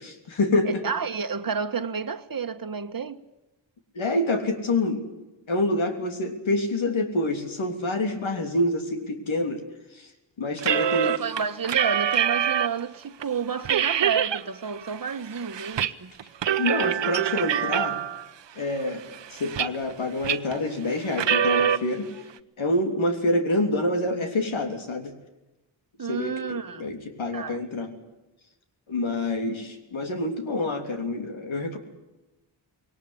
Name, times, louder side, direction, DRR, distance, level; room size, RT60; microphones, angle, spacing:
voice 1, 0.0-0.8 3.9-5.1 5.5-9.6 9.9-10.1 10.4-11.1 16.6-18.0 18.5-19.0 19.3-22.1 22.6-25.1 26.1-27.9 28.9-31.8, left 2 dB, 75° left, 3.4 m, -27 dB
voice 2, 0.6-3.2 10.8-16.1 26.0-26.9 27.3-27.6, right 6 dB, 45° right, 1.3 m, -30 dB
sound 1, 10.6-12.8 13.2-13.3 13.6-14.4 14.8-15.9 16.2-18.2 18.8-19.9 20.2-20.6 21.1-21.8, right 9 dB, 65° right, 1.0 m, -25 dB
21.0 x 18.5 x 9.8 m
cardioid pair, 55°, 47 cm